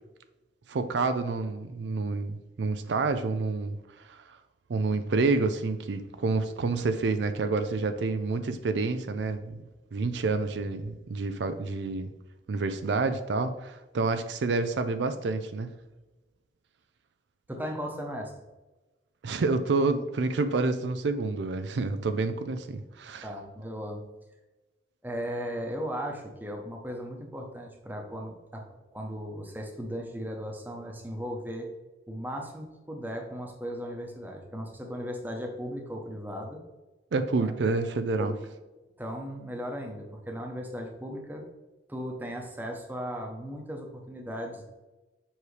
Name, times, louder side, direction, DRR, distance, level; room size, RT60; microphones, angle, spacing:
voice 1, 0.7-3.8 4.1-4.4 4.7-9.5 9.9-12.1 12.5-15.7 19.2-23.3 37.1-38.3, right 3 dB, 70° right, 9 dB, 0.4 m, -28 dB
voice 2, 17.5-18.3 23.2-24.0 25.0-28.6 28.9-31.7 32.1-36.6 37.4-37.5 38.2-38.4 39.0-41.4 41.9-44.6, equal, 10° right, 2 dB, 0.9 m, -37 dB
7.1 x 4.8 x 3.3 m, 1.1 s
head